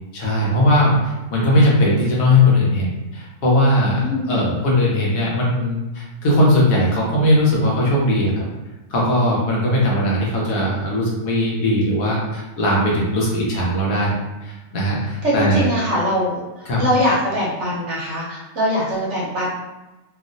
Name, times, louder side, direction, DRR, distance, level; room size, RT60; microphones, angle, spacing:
voice 1, 0.1-8.4 8.9-14.1 14.4-15.7 16.7-16.8, left 1 dB, 70° left, -5 dB, 1.3 m, -19 dB
voice 2, 4.0-4.4 14.9-19.5, equal, 55° right, -5 dB, 1.0 m, -22 dB
3.1 x 2.6 x 2.5 m, 1.1 s
omnidirectional pair, 1.6 m